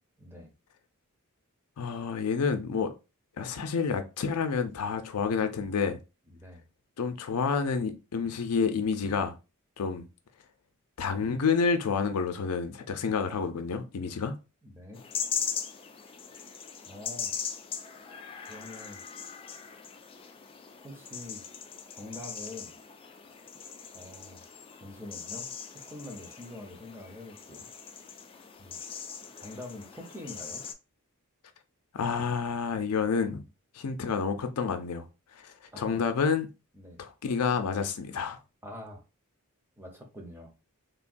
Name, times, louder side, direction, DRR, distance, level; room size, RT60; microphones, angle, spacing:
voice 1, 0.2-0.5 6.3-6.7 14.6-15.0 16.9-17.4 18.5-19.0 20.8-21.4 21.9-22.8 23.9-24.4 24.8-27.7 28.6-28.8 29.4-30.7 35.7-36.0 36.7-37.0 38.6-39.0 39.8-40.5, left 1 dB, 10° right, 0.6 m, -45 dB
voice 2, 1.8-2.9 3.4-6.0 7.0-9.3 9.8-10.0 11.0-14.3 31.9-33.4 33.8-35.1 35.4-36.5 37.0-38.4, left 5 dB, 85° left, 0.5 m, -29 dB
sound 1, 14.9-30.7, left 7 dB, 25° left, 0.3 m, -40 dB
3.5 x 2.2 x 2.5 m
head